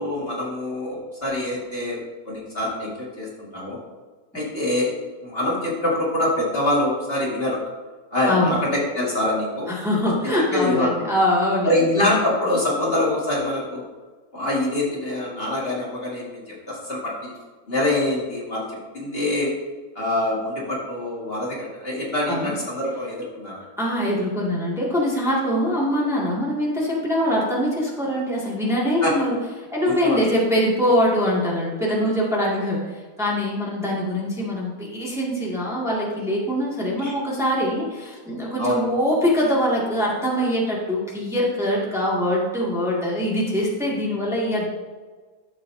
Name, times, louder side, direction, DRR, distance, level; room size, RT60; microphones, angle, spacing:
voice 1, 0.0-2.0 2.3-3.8 4.3-4.9 5.2-7.6 8.1-8.6 9.0-9.7 10.2-11.1 11.6-13.8 14.3-16.4 16.7-17.3 17.7-18.7 18.9-19.5 20.0-23.6 29.0-29.1 29.8-30.2 37.0-37.1 38.6-38.9, left 1 dB, 40° left, -6 dB, 2.2 m, -24 dB
voice 2, 8.3-8.8 9.7-12.1 22.3-22.5 23.8-29.4 29.7-32.9 33.2-44.6, equal, ahead, -6 dB, 2.0 m, -23 dB
13.0 x 7.5 x 2.7 m, 1.4 s
omnidirectional pair, 1.6 m